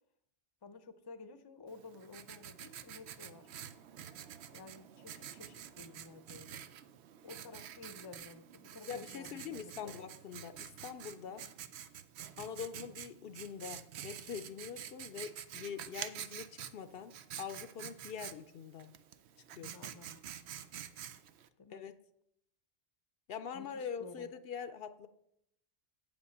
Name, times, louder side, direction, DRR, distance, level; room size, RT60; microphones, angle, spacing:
voice 1, 0.6-3.5 4.5-6.6 7.2-9.9 11.3-11.5 19.6-20.2 21.6-21.8 23.5-24.3, left 3 dB, 30° left, 10 dB, 0.6 m, -53 dB
Writing, 1.7-21.5, right 9 dB, 80° right, 0.9 m, -48 dB
voice 2, 8.9-11.5 12.4-18.9 19.6-19.7 21.7-21.9 23.3-25.1, left 7 dB, 65° left, 10 dB, 0.7 m, -44 dB
8.6 x 5.3 x 7.1 m, 0.76 s
omnidirectional pair, 1.1 m